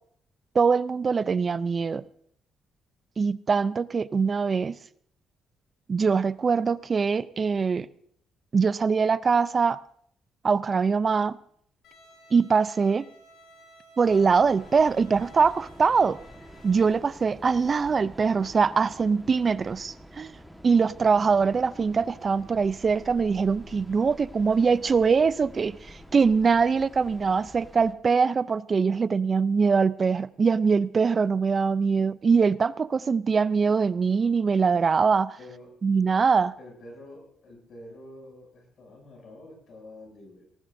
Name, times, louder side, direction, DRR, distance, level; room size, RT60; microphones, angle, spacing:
voice 1, 0.5-2.0 3.2-4.8 5.9-7.9 8.5-9.8 10.4-11.4 12.3-13.1 14.0-16.2 16.6-20.3 20.6-35.4 35.8-36.5, right 5 dB, 40° right, 17 dB, 0.5 m, -23 dB
Bowed string instrument, 11.8-16.9, equal, 90° left, 3.9 m, -54 dB
Train, 14.0-27.9, equal, ahead, 1.5 m, -48 dB
voice 2, 35.4-35.7 36.6-40.4, left 1 dB, 60° left, 1 dB, 7.4 m, -47 dB
19.5 x 18.0 x 2.7 m, 0.66 s
cardioid pair, 90°, 0 cm